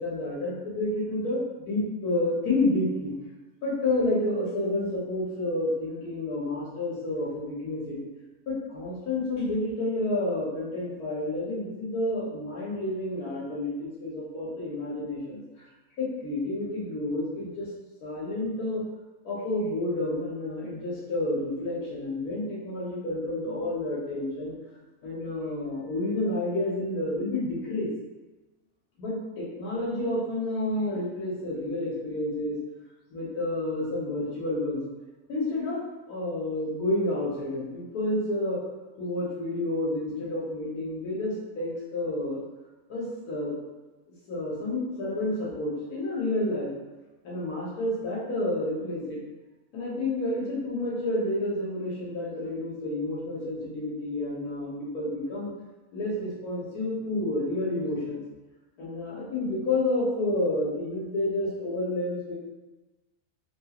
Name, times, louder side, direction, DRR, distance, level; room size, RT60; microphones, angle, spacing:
voice 1, 0.0-3.1 3.6-8.0 8.5-15.4 16.0-17.7 18.0-18.8 19.2-24.5 25.0-27.9 29.0-32.6 33.1-34.8 35.3-35.8 36.1-38.6 39.0-42.4 42.9-43.5 44.3-46.7 47.2-49.2 49.7-55.5 55.9-58.2 58.8-62.3, left 1 dB, 85° left, -6 dB, 1.5 m, -30 dB
3.6 x 2.4 x 2.9 m, 1.1 s
omnidirectional pair, 1.6 m